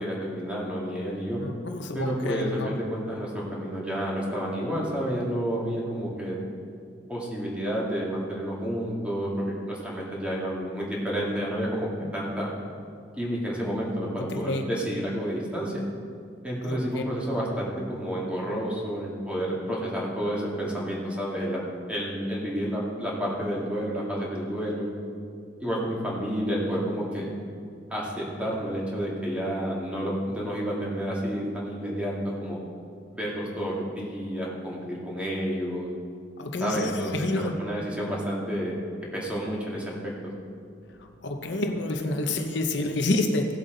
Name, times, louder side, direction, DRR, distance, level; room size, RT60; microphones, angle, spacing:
voice 1, 0.0-1.4 1.9-6.4 7.1-12.6 13.2-15.8 16.4-21.6 21.9-24.9 25.6-27.3 27.9-32.6 33.1-35.9 36.6-38.7 39.1-40.1, equal, 5° right, -5 dB, 2.1 m, -30 dB
voice 2, 1.4-2.7 14.3-14.7 16.6-17.0 36.4-37.5 41.0-43.5, left 2 dB, 65° left, 4 dB, 0.8 m, -28 dB
17.0 x 8.0 x 3.9 m, 2.3 s
head